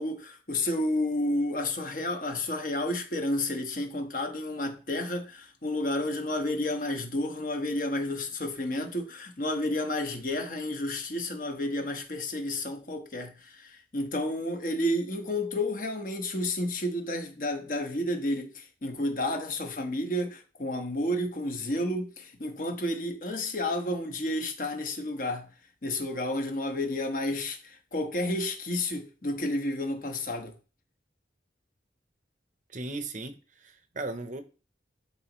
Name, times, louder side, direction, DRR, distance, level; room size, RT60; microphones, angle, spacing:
voice 1, 0.0-25.5 25.8-30.5, left 1 dB, 45° left, 1.2 m, -31 dB
voice 2, 32.7-34.4, right 2 dB, 40° right, 0.8 m, -37 dB
11.0 x 4.0 x 3.1 m
head